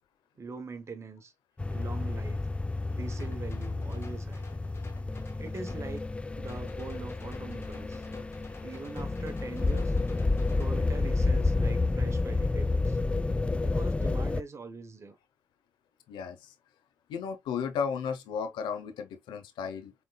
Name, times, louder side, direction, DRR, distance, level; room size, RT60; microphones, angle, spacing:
voice 1, 0.4-1.3 1.7-2.5 2.9-4.4 5.4-8.0 8.6-10.0 10.6-13.0 13.6-15.2, right 4 dB, 35° right, 1.2 m, -43 dB
sound 1, 1.6-14.4, left 3 dB, 15° left, 0.3 m, -30 dB
sound 2, 2.9-6.0 6.5-10.7, left 4 dB, 35° left, 1.8 m, -51 dB
voice 2, 16.1-16.5 17.1-19.9, left 6 dB, 75° left, 1.0 m, -34 dB
5.6 x 3.6 x 2.3 m
supercardioid pair, 60°, 8 cm